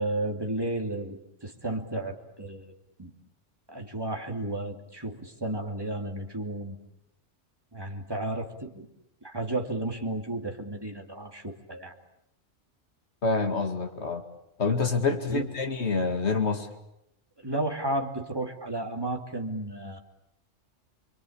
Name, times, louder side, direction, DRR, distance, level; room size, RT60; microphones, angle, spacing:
voice 1, 0.0-2.7 3.0-3.1 3.7-6.8 7.7-8.9 9.2-12.0 15.3-15.5 17.4-20.0, right 1 dB, 20° right, 2 dB, 2.7 m, -33 dB
voice 2, 13.2-14.2 14.6-16.7, left 4 dB, 65° left, 5 dB, 2.5 m, -27 dB
28.5 x 23.0 x 8.6 m, 0.82 s
omnidirectional pair, 1.2 m